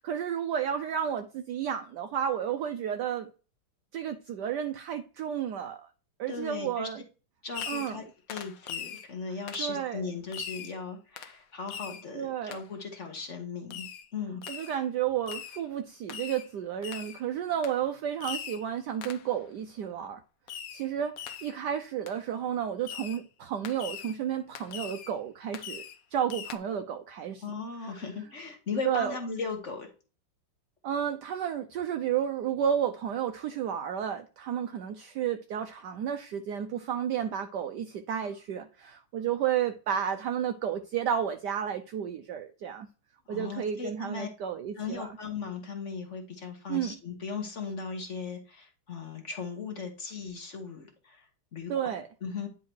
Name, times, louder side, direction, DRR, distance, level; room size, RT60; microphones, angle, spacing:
voice 1, 0.0-3.3 3.9-5.9 6.2-7.0 7.7-8.0 9.3-10.0 12.1-12.6 14.5-20.2 20.7-25.8 26.1-27.4 27.8-28.0 28.8-29.2 30.8-42.9 43.3-45.2 46.7-47.0 51.7-52.1, right 9 dB, 75° right, 1.0 m, -32 dB
voice 2, 6.3-6.9 7.4-13.9 14.1-14.4 27.4-29.9 43.3-44.3 44.8-51.2 51.5-51.7 52.2-52.5, left 5 dB, 40° left, 1.2 m, -37 dB
Fireworks, 7.5-8.0 8.3-9.1 9.5-9.7 10.3-10.7 11.2-11.4 11.7-12.0 12.5-12.6 13.7-14.1 14.4-14.8 15.3-15.6 16.1-16.5 16.8-17.2 17.6-17.8 18.2-18.6 19.0-19.3 20.5-20.9 21.2-21.6 22.1-22.2 22.8-23.2 23.6-24.2 24.5-25.1 25.5-26.0 26.3-26.6, left 8 dB, 80° left, 0.7 m, -40 dB
9.8 x 3.7 x 4.5 m
omnidirectional pair, 2.4 m